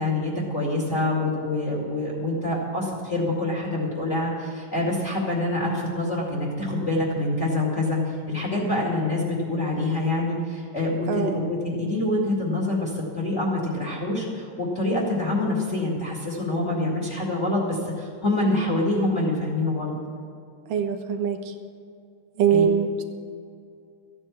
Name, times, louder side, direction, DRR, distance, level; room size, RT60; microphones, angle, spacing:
voice 1, 0.0-19.9 22.5-22.6, left 2 dB, 25° left, -3 dB, 2.2 m, -26 dB
voice 2, 11.1-11.4 20.7-21.5 22.4-23.0, right 7 dB, 80° right, 5 dB, 2.6 m, -23 dB
14.5 x 9.0 x 7.4 m, 2.3 s
omnidirectional pair, 3.7 m